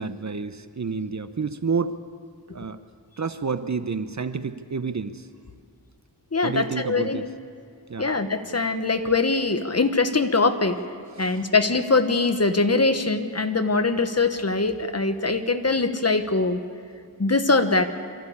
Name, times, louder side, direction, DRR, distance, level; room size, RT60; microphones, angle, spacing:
voice 1, 0.0-2.0 2.5-2.8 3.2-5.3 6.4-7.3 7.9-8.1 11.1-11.4, right 5 dB, 40° right, 11 dB, 0.8 m, -29 dB
voice 2, 6.3-7.3 8.0-10.8 11.2-16.6 17.2-17.9, left 3 dB, 35° left, 9 dB, 1.3 m, -22 dB
24.0 x 14.5 x 8.5 m, 2.3 s
wide cardioid pair, 65°, 42 cm